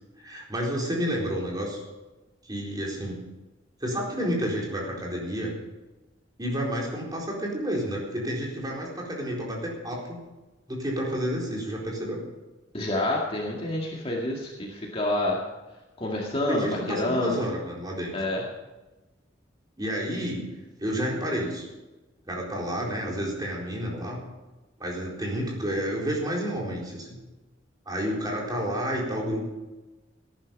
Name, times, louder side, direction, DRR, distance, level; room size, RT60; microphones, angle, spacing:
voice 1, 0.2-1.8 2.4-3.2 3.8-5.5 6.4-10.2 10.7-12.2 16.5-18.1 19.8-20.5 20.8-21.7 22.3-24.2 24.8-27.2 27.9-29.5, equal, 20° right, -3 dB, 4.2 m, -30 dB
voice 2, 12.7-15.4 16.0-17.4 18.1-18.4, left 1 dB, 30° left, -2 dB, 2.1 m, -28 dB
18.0 x 10.5 x 5.4 m, 1.1 s
head